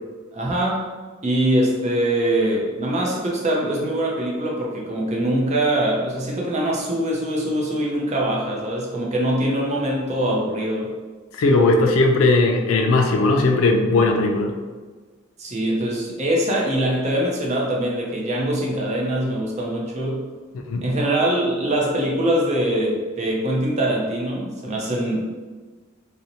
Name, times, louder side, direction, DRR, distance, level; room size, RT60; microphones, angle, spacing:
voice 1, 0.3-0.9 1.2-10.9 15.4-20.2 20.8-25.2, right 1 dB, 35° right, -2 dB, 0.5 m, -23 dB
voice 2, 11.4-14.5 20.7-20.8, left 2 dB, 80° left, 3 dB, 0.4 m, -18 dB
2.5 x 2.0 x 2.8 m, 1.4 s
head